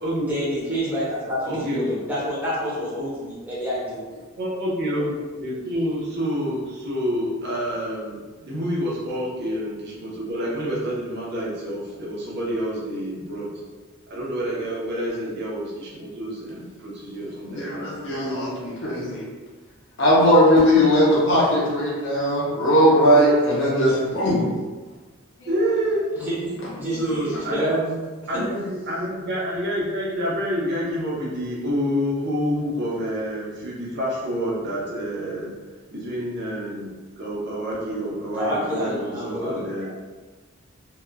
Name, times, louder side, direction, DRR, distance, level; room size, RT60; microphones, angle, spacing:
voice 1, 0.3-4.2 26.2-27.2 27.5-27.8 38.4-39.6, equal, 10° right, -9 dB, 0.8 m, -28 dB
voice 2, 1.5-1.8 4.4-13.5 14.1-18.7 25.5-26.1 26.9-27.9 28.3-35.5 35.9-40.0, equal, 55° right, -5 dB, 0.7 m, -28 dB
voice 3, 17.5-19.2 20.0-24.4 25.4-25.5, equal, 60° left, -7 dB, 0.6 m, -19 dB
2.9 x 2.3 x 2.2 m, 1.3 s
head